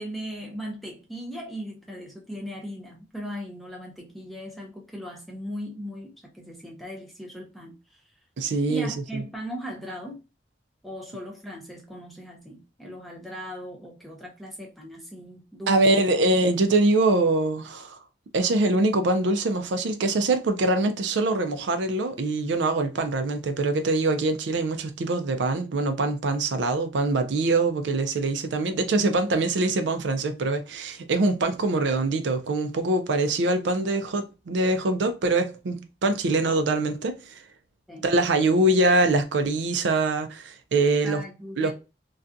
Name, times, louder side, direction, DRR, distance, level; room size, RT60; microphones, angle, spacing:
voice 1, 0.0-7.7 8.7-10.2 10.8-16.1 37.9-38.0 41.0-41.7, equal, ahead, 0.6 m, -38 dB
voice 2, 8.4-9.2 15.7-18.0 18.3-37.4 38.0-41.2 41.6-41.7, right 2 dB, 80° right, 0.4 m, -23 dB
2.4 x 2.2 x 2.5 m
head